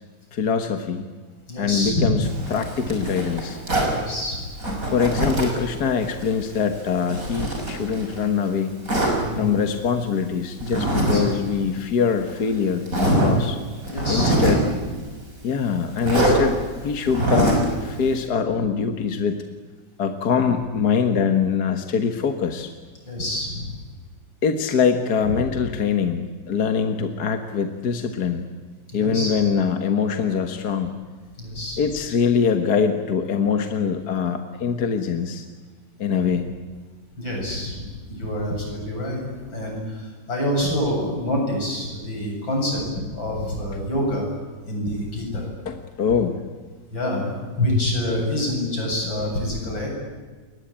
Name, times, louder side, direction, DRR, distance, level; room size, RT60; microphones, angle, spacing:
voice 1, 0.3-1.1 1.6-3.6 4.8-8.7 9.4-13.6 14.1-14.6 15.4-19.4 20.0-22.7 24.4-28.5 28.9-31.0 31.8-35.5 36.0-36.5 45.7-46.4, left 6 dB, 55° left, 6 dB, 1.9 m, -23 dB
voice 2, 1.5-2.1 3.9-4.5 9.2-9.5 11.0-11.2 13.9-14.4 23.1-23.7 28.9-29.4 31.4-31.8 37.2-42.8 43.1-44.3 44.6-45.5 46.9-49.9, left 1 dB, 85° left, 0 dB, 8.8 m, -26 dB
Zipper (clothing), 2.2-4.0 4.6-5.6 6.0-8.3 8.9-9.2 10.6-11.2 11.5-11.6 12.3-12.4 12.9-13.3 13.8-14.7 16.0-16.4 17.1-17.7, right 1 dB, 45° right, 6.7 m, -23 dB
29.0 x 22.0 x 8.8 m, 1.4 s
omnidirectional pair, 2.0 m